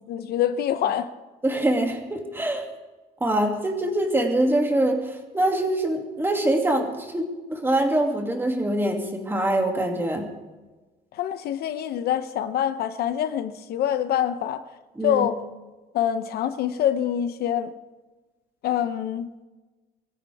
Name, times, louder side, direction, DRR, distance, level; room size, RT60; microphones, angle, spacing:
voice 1, 0.1-1.1 11.1-14.6 15.0-15.4 15.9-17.7 18.6-19.3, left 10 dB, 70° left, 0.8 m, -25 dB
voice 2, 1.4-2.6 3.2-10.3 15.0-15.3, right 1 dB, 15° right, 2.5 m, -24 dB
23.5 x 15.0 x 3.5 m
cardioid pair, 110°, 17 cm